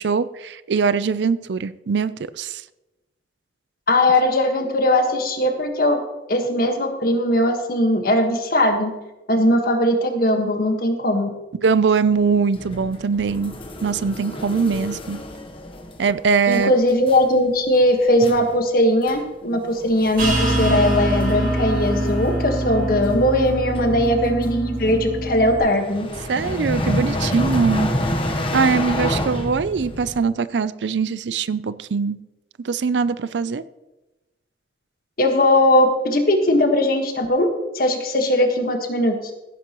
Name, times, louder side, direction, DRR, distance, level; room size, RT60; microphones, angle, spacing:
voice 1, 0.0-2.6 11.6-13.5 13.8-15.2 16.0-16.7 26.3-27.9 28.3-32.2 32.6-33.6, right 5 dB, 80° right, 16 dB, 0.5 m, -22 dB
voice 2, 3.9-6.0 6.3-8.9 9.3-11.3 16.5-26.1 35.2-37.5 37.7-39.2, left 1 dB, 55° left, 5 dB, 1.5 m, -19 dB
sound 1, 12.5-16.1 16.5-16.7 17.1-17.3 17.7-17.9 18.2-18.5 19.1-19.2 19.5-30.2, left 1 dB, 30° left, 1.0 m, -29 dB
sound 2, 20.2-25.6, right 1 dB, 50° right, 4.4 m, -24 dB
16.0 x 10.0 x 3.0 m, 1.0 s
head